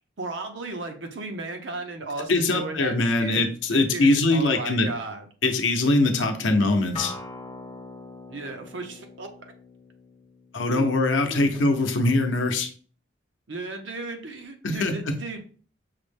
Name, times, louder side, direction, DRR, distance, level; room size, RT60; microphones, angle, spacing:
voice 1, 0.2-5.3 8.3-9.5 10.7-10.9 11.3-11.5 13.5-15.4, right 3 dB, 75° right, 4 dB, 0.7 m, -35 dB
voice 2, 2.3-4.9 5.4-7.1 10.5-12.7 14.6-15.1, left 2 dB, 85° left, 5 dB, 0.7 m, -22 dB
Acoustic guitar, 6.9-12.1, left 3 dB, 30° left, 1.1 m, -42 dB
5.8 x 2.1 x 3.3 m, 0.42 s
head